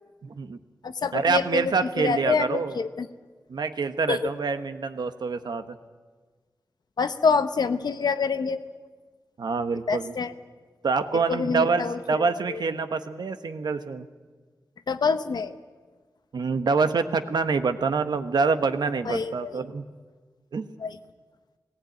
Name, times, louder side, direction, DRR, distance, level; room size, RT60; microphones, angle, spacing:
voice 1, 0.2-0.6 1.1-2.8 3.5-5.8 9.4-10.1 10.8-14.1 16.3-19.8 20.5-20.7, right 4 dB, 75° right, 9 dB, 1.2 m, -26 dB
voice 2, 0.8-3.1 4.1-4.3 7.0-8.6 9.9-10.3 11.3-12.6 14.9-15.5 19.0-19.6 20.8-21.0, left 5 dB, 75° left, 10 dB, 1.0 m, -26 dB
19.0 x 17.5 x 9.2 m, 1.4 s
wide cardioid pair, 95°, 7 cm